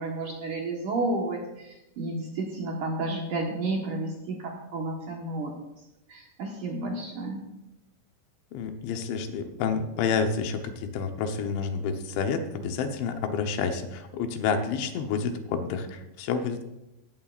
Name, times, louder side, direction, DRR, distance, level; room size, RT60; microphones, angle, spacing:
voice 1, 0.0-5.5 6.1-7.4, right 2 dB, 65° right, -1 dB, 2.1 m, -31 dB
voice 2, 8.5-16.6, left 5 dB, 80° left, 5 dB, 3.3 m, -29 dB
17.0 x 15.0 x 2.5 m, 0.94 s
omnidirectional pair, 5.3 m